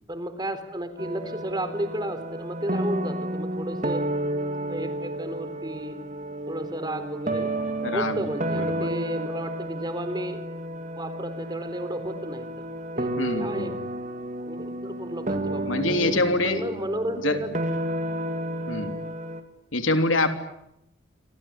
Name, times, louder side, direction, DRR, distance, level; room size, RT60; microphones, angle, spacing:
voice 1, 0.1-4.0 4.7-6.0 6.5-7.5 7.8-10.4 11.0-12.7 13.0-13.7 14.4-17.5, right 1 dB, 20° right, 10 dB, 3.8 m, -33 dB
sound 1, 1.0-19.4, right 1 dB, 40° right, 2.9 m, -31 dB
voice 2, 7.8-8.9 13.2-13.9 15.7-16.6 17.2-17.4 18.7-19.0 19.7-20.3, left 2 dB, 75° left, 7 dB, 3.4 m, -26 dB
28.0 x 24.5 x 8.8 m, 0.83 s
head